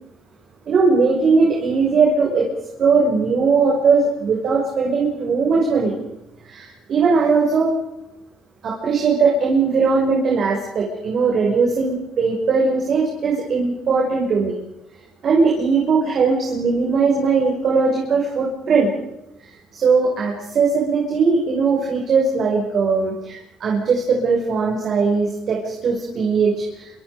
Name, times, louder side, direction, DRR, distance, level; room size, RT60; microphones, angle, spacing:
voice 1, 0.7-2.5 2.8-5.9 6.4-7.7 8.6-14.6 15.2-18.9 19.4-26.9, right 4 dB, 50° right, -2 dB, 6.4 m, -19 dB
27.5 x 26.5 x 5.3 m, 0.87 s
cardioid pair, 115°, 0 cm